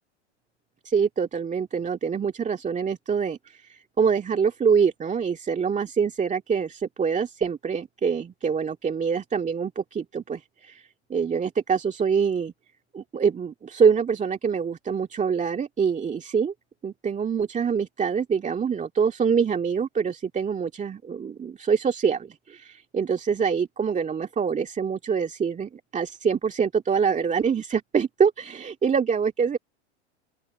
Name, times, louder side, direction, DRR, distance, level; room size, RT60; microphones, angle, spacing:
voice 1, 0.8-12.5 12.9-16.5 16.8-29.6, right 6 dB, 20° right, 2.2 m, -25 dB
open air
hypercardioid pair, 95°, 35 cm